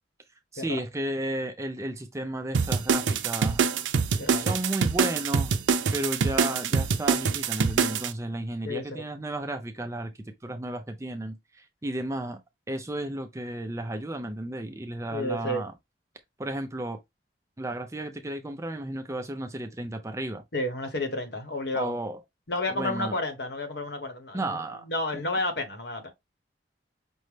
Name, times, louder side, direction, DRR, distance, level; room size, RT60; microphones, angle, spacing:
voice 1, 0.5-3.7 4.4-5.5 5.9-12.4 12.7-15.7 16.4-17.0 17.6-20.4 21.8-22.2 22.7-23.1 24.3-24.8, right 1 dB, 15° right, 0.5 m, -33 dB
sound 1, 2.5-8.1, right 5 dB, 90° right, 0.5 m, -25 dB
voice 2, 4.2-4.6 8.6-9.0 15.1-15.6 20.5-21.9 22.5-24.6 24.8-26.1, left 1 dB, 60° left, 1.0 m, -31 dB
5.3 x 2.1 x 3.2 m
head